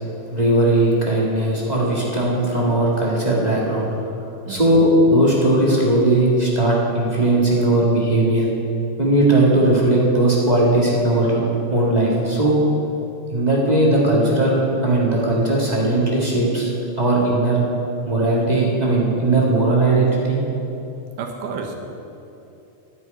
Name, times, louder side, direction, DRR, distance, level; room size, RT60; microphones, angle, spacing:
voice 1, 0.3-3.9 4.5-8.5 9.0-11.4 11.7-12.6 13.3-16.7 17.0-17.6 18.1-20.4, right 1 dB, 30° right, -4 dB, 0.7 m, -18 dB
voice 2, 4.5-4.8 21.2-21.8, right 5 dB, 75° right, 2 dB, 2.7 m, -30 dB
9.7 x 7.6 x 9.3 m, 2.9 s
omnidirectional pair, 3.8 m